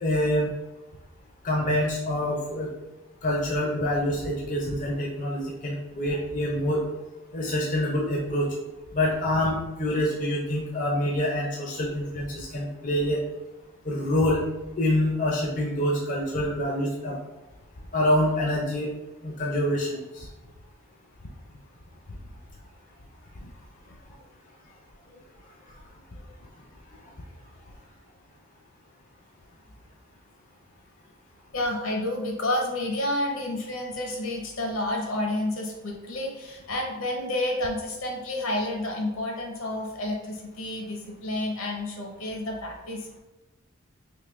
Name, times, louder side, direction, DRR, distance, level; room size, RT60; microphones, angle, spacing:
voice 1, 0.0-0.5 1.4-2.7 3.2-6.8 7.3-8.5 8.9-13.2 13.8-14.4 14.8-17.2 17.9-18.9 19.2-20.3, left 1 dB, 40° left, -2 dB, 0.5 m, -26 dB
voice 2, 31.5-43.2, left 1 dB, 70° left, 1 dB, 0.8 m, -30 dB
3.6 x 2.7 x 3.1 m, 1.1 s
head